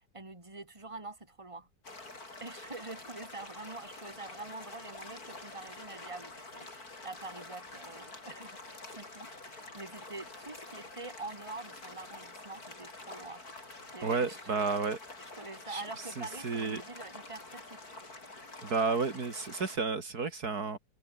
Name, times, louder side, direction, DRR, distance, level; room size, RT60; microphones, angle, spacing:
voice 1, 0.1-1.7 2.4-8.6 8.9-13.4 13.9-14.7 15.4-18.1, right 3 dB, 15° right, 3.1 m, -45 dB
sound 1, 1.8-19.8, left 2 dB, 60° left, 5.5 m, -48 dB
voice 2, 14.0-15.0 15.7-15.8 16.2-16.8 18.6-20.8, right 4 dB, 65° right, 2.9 m, -31 dB
omnidirectional pair, 1.8 m